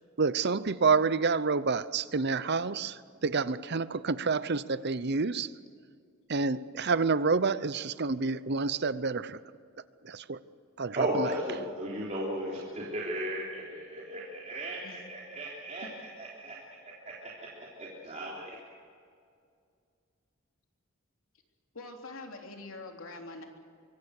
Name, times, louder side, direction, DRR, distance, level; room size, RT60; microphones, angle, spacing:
voice 1, 0.2-5.5 6.3-9.4 10.0-10.4 10.8-11.3, right 4 dB, 55° right, 0.8 m, -28 dB
voice 2, 10.9-15.9 16.2-16.6 16.8-17.5 17.8-18.6, right 1 dB, 35° right, 3.5 m, -35 dB
voice 3, 21.7-23.4, left 2 dB, 75° left, 3.3 m, -44 dB
24.5 x 24.0 x 6.6 m
head